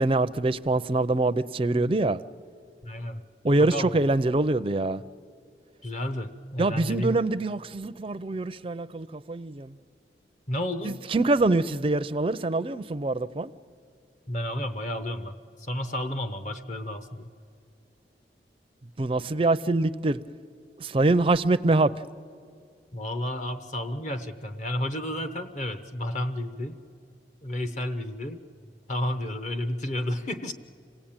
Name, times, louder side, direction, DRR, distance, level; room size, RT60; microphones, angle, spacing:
voice 1, 0.0-2.2 3.4-5.0 6.6-9.7 10.8-13.5 19.0-20.2 20.8-21.9, right 2 dB, 30° right, 0.5 m, -24 dB
voice 2, 2.8-3.2 3.6-4.0 5.8-7.2 10.5-11.0 14.3-17.3 22.9-26.8 27.4-28.4 28.9-30.5, left 1 dB, 45° left, 0.9 m, -31 dB
26.5 x 17.5 x 8.8 m
head